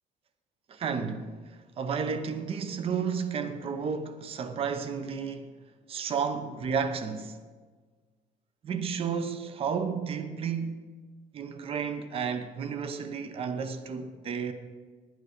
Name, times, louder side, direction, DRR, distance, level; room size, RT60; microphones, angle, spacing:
voice 1, 0.7-5.6 5.9-7.4 8.6-10.9 11.3-14.5, right 6 dB, 35° right, 0.7 m, -32 dB
11.0 x 9.2 x 5.0 m
cardioid pair, 170°, 17 cm